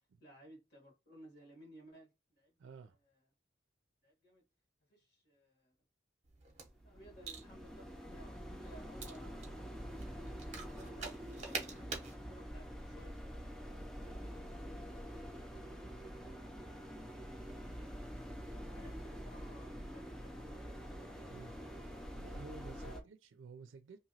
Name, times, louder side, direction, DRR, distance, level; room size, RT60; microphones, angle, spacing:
voice 1, 0.2-2.6 3.0-3.2 4.0-4.4 4.9-5.7 6.6-9.4 10.0-14.1 18.7-20.8 22.7-23.0, equal, 55° left, 1.4 m, -59 dB
voice 2, 2.6-3.0 21.2-21.6 22.1-24.0, right 4 dB, 85° right, 0.4 m, -52 dB
sound 1, 6.2-12.1, right 4 dB, 35° right, 0.7 m, -47 dB
sound 2, 6.7-23.0, equal, 5° left, 0.4 m, -46 dB
2.9 x 2.7 x 2.7 m
head